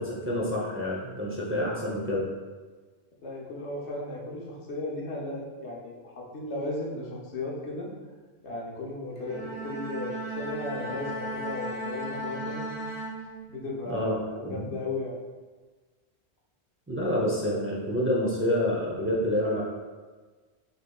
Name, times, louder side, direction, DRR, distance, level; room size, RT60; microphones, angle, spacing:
voice 1, 0.0-2.3 13.9-14.2 14.4-14.6 16.9-19.6, left 1 dB, 15° right, -4 dB, 0.5 m, -28 dB
voice 2, 3.2-7.9 8.4-12.7 13.5-15.2 19.2-19.3, left 2 dB, 85° left, -3 dB, 1.2 m, -35 dB
Bowed string instrument, 9.2-13.8, right 1 dB, 55° left, 0.9 m, -36 dB
5.3 x 3.2 x 2.3 m, 1.4 s
omnidirectional pair, 1.1 m